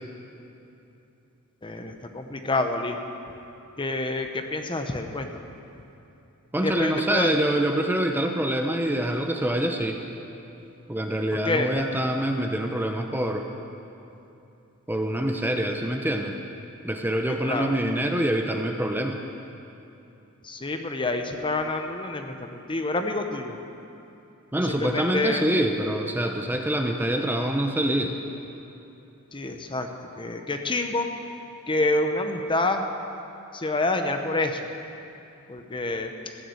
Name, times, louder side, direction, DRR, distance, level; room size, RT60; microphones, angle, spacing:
voice 1, 1.6-3.0 3.8-5.4 6.6-7.3 11.5-11.7 17.3-17.7 20.4-23.6 24.6-25.5 29.3-29.9 30.2-31.1 31.7-32.8 33.5-34.6 35.5-36.1, left 2 dB, 20° left, 6 dB, 0.8 m, -27 dB
voice 2, 6.5-10.0 10.9-13.5 14.9-16.4 16.8-19.2 24.5-28.2, right 1 dB, 10° right, 3 dB, 0.7 m, -25 dB
14.5 x 9.9 x 7.8 m, 2.9 s
head